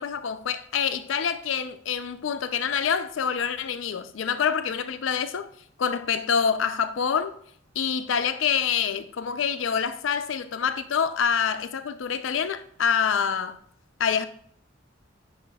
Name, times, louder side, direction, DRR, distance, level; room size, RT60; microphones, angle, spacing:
voice 1, 0.0-5.5 5.8-7.3 7.8-13.6 14.0-14.3, left 7 dB, 75° left, 0.4 m, -26 dB
9.4 x 5.5 x 2.3 m
head